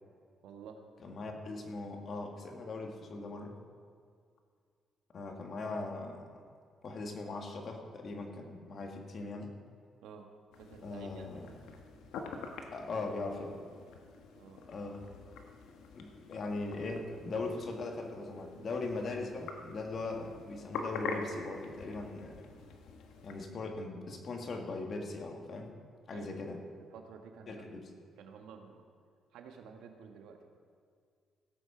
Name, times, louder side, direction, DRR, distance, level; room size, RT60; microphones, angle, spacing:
voice 1, 0.4-0.8 10.0-10.3 10.6-11.4 14.4-14.6 17.3-17.6 26.1-26.4 26.8-27.7 28.2-28.8 29.3-30.4, right 6 dB, 90° right, 4 dB, 1.4 m, -51 dB
voice 2, 1.0-3.6 5.1-6.2 6.8-9.5 10.8-11.5 12.7-13.6 14.7-15.0 15.3-15.4 15.9-22.5 23.2-25.7 26.1-26.6 27.5-27.9, left 3 dB, 50° left, 3 dB, 1.9 m, -40 dB
sound 1, 10.5-23.5, left 4 dB, 90° left, 1.3 m, -46 dB
16.5 x 8.4 x 5.0 m, 2.2 s
cardioid pair, 90°, 0 cm